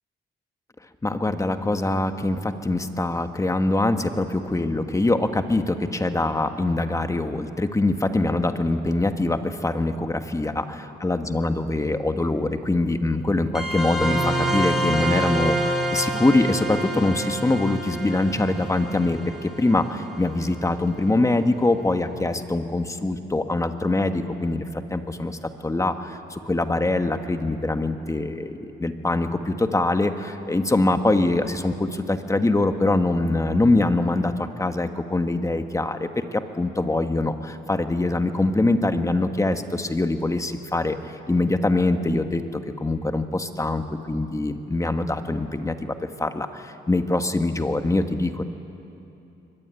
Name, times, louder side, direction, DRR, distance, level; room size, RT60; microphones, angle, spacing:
voice 1, 1.0-48.4, left 2 dB, 15° left, 7 dB, 1.5 m, -24 dB
sound 1, 13.5-20.6, right 1 dB, ahead, 5.3 m, -27 dB
23.0 x 21.5 x 9.2 m, 2.8 s
cardioid pair, 90°, 20 cm